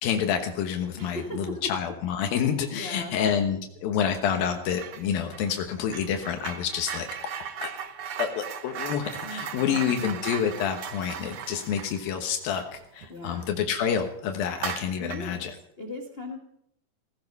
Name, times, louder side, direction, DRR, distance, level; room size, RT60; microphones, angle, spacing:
voice 1, 0.0-7.1 7.6-7.7 8.2-15.5, left 8 dB, 85° left, 5 dB, 3.0 m, -28 dB
voice 2, 1.0-1.6 2.7-3.1 9.2-10.2 13.1-13.5 15.0-15.5 15.8-16.4, left 1 dB, 30° left, 1 dB, 1.1 m, -39 dB
sound 1, 4.7-5.1 5.3-13.5 13.9-14.0 14.5-15.4, right 8 dB, 70° right, 1.3 m, -37 dB
17.0 x 15.5 x 5.4 m, 0.74 s
omnidirectional pair, 4.1 m